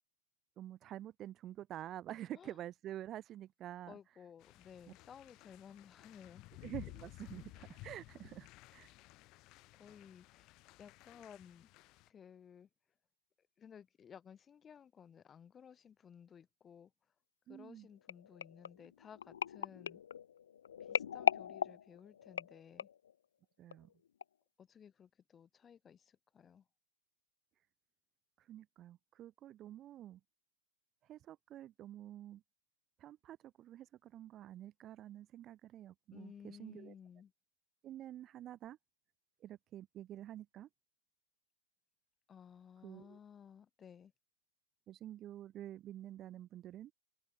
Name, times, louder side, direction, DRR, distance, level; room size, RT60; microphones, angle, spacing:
voice 1, 0.6-3.9 6.6-8.9 17.5-17.9 23.6-23.9 28.4-30.2 31.1-32.4 33.0-36.9 37.8-38.8 39.4-40.7 42.8-43.2 44.9-46.9, right 12 dB, 30° right, 1.4 m, -48 dB
voice 2, 3.9-6.4 9.7-10.5 10.8-11.7 12.1-12.7 13.6-16.9 17.5-20.0 20.8-22.9 24.6-26.6 36.1-37.3 42.3-44.1, left 8 dB, 20° left, 6.3 m, -57 dB
sound 1, 4.4-12.1, left 21 dB, 40° left, 5.7 m, -55 dB
sound 2, 18.1-23.1 23.7-23.9 24.2-24.3, left 8 dB, 85° left, 2.1 m, -38 dB
hypercardioid pair, 135°, 0 cm